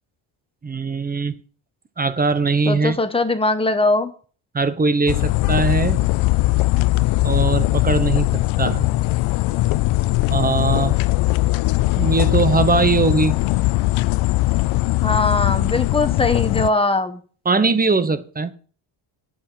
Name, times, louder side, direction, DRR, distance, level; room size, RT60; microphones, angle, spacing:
voice 1, 0.6-1.4 2.0-3.0 4.5-6.1 7.2-8.9 10.3-10.9 11.9-13.3 17.4-18.5, right 4 dB, 20° right, 0.9 m, -20 dB
voice 2, 2.7-4.1 15.0-17.2, left 2 dB, 10° left, 1.3 m, -20 dB
sound 1, 5.1-16.7, left 19 dB, 70° left, 0.6 m, -20 dB
9.8 x 7.6 x 6.0 m
cardioid pair, 135°, 50 cm